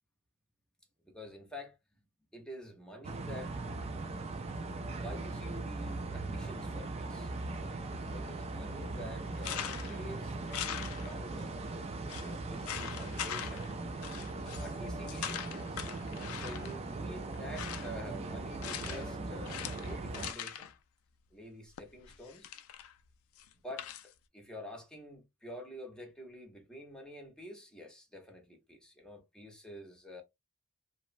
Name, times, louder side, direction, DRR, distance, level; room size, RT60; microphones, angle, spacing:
voice 1, 1.0-1.8 2.3-3.5 4.9-7.3 8.0-11.6 12.2-13.6 14.5-15.5 16.0-20.7 21.3-22.5 23.6-30.2, equal, 5° left, 0.7 m, -48 dB
sound 1, 3.0-20.3, right 2 dB, 30° right, 0.3 m, -39 dB
sound 2, 9.4-10.0 10.5-11.4 11.7-11.8 12.1-12.3 12.7-13.7 14.0-14.7 15.1-16.8 17.3-18.0 18.6-19.1 19.4-20.7 21.8-22.9 23.4-24.1, left 10 dB, 75° left, 0.3 m, -41 dB
2.9 x 2.0 x 2.5 m
head